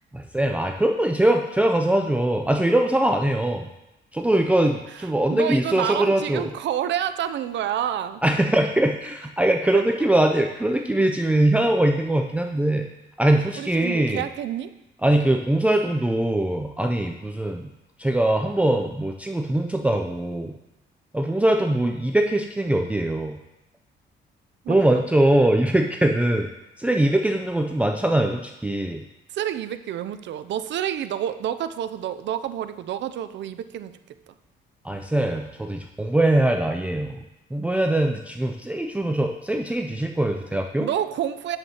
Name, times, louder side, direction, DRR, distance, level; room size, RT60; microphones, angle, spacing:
voice 1, 0.1-3.7 4.1-6.4 8.2-12.9 13.2-14.2 15.0-17.7 18.0-20.5 21.1-23.4 24.7-26.5 26.8-29.0 34.8-37.2 37.5-40.9, right 1 dB, 5° right, 3 dB, 0.5 m, -22 dB
voice 2, 4.9-8.2 9.7-10.1 13.6-14.7 24.6-24.9 29.3-34.0 34.3-34.4 40.8-41.6, right 10 dB, 65° right, 12 dB, 0.5 m, -29 dB
7.8 x 7.3 x 2.9 m, 0.92 s
cardioid pair, 90°, 20 cm